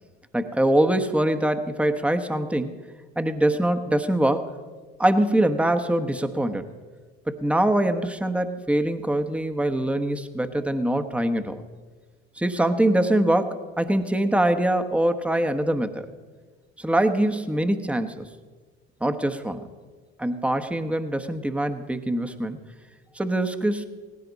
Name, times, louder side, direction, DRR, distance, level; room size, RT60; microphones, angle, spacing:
voice 1, 0.3-2.8 3.2-4.6 5.0-6.7 7.3-11.6 12.4-16.1 16.8-18.3 19.0-19.7 20.2-22.6 23.1-23.8, right 1 dB, 5° right, 7 dB, 1.1 m, -23 dB
18.0 x 15.5 x 4.1 m, 1.4 s
hypercardioid pair, 60°, 32 cm